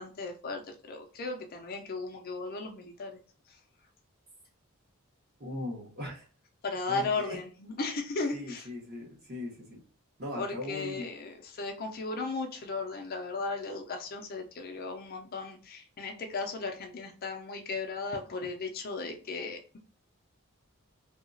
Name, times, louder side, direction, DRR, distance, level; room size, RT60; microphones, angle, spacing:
voice 1, 0.0-3.2 6.6-8.7 10.4-19.8, left 3 dB, 45° left, 4 dB, 0.5 m, -36 dB
voice 2, 5.4-6.3 6.9-7.4 8.3-9.8 10.2-11.1, left 1 dB, 45° right, -3 dB, 1.3 m, -39 dB
2.8 x 2.3 x 2.5 m, 0.39 s
head